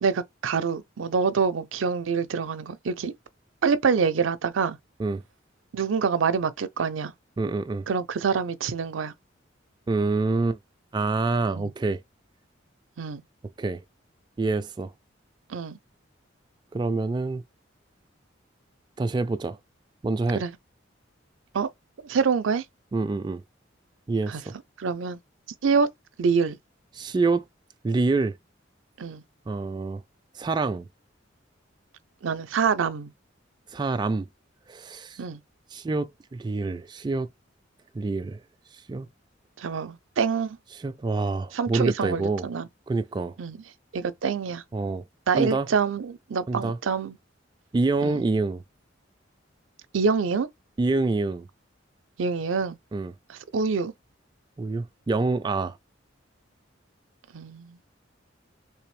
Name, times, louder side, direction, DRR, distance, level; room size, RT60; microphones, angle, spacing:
voice 1, 0.0-3.1 3.6-4.8 5.7-7.1 7.9-9.1 11.5-11.7 13.0-13.2 15.5-15.8 20.3-20.6 21.5-21.7 22.0-22.6 24.3-24.4 24.8-25.2 25.6-25.9 26.2-26.6 29.0-29.2 32.2-33.1 35.2-35.4 39.6-40.6 41.5-42.7 43.4-43.6 43.9-44.6 45.3-47.2 48.0-48.2 49.9-50.5 52.2-52.8 53.3-53.9 57.3-57.8, right 5 dB, 85° right, 0.5 m, -26 dB
voice 2, 7.4-7.9 9.9-10.6 10.9-12.0 13.6-13.8 14.4-14.9 16.7-17.4 19.0-19.6 20.0-20.4 22.9-23.4 24.1-24.5 27.0-27.4 27.8-28.4 29.5-30.0 30.3-30.9 33.7-34.3 34.7-35.2 35.7-37.3 37.9-38.4 38.9-39.1 40.8-42.5 42.9-43.4 44.7-45.0 45.4-45.7 46.5-46.8 47.7-48.6 50.8-51.5 52.9-53.1 54.6-55.8, right 3 dB, 25° right, 0.3 m, -26 dB
3.3 x 3.3 x 3.2 m
head